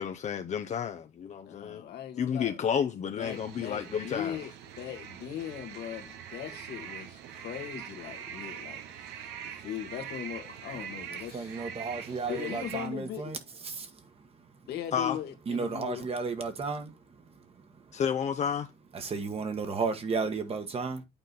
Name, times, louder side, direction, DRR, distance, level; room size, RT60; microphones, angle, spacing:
voice 1, 0.0-1.8 2.2-4.4 14.9-15.2 17.9-18.7, left 7 dB, 45° left, 0.7 m, -31 dB
voice 2, 1.4-2.6 3.2-4.5 4.8-11.6 12.0-13.3 14.7-16.0, left 10 dB, 70° left, 1.6 m, -39 dB
sound 1, 3.2-12.9, right 9 dB, 90° right, 1.0 m, -43 dB
voice 3, 11.3-13.4 13.6-14.3 15.5-16.9 17.3-17.5 18.9-21.0, right 4 dB, 35° right, 1.4 m, -33 dB
8.9 x 3.9 x 4.0 m
cardioid pair, 110°, 17 cm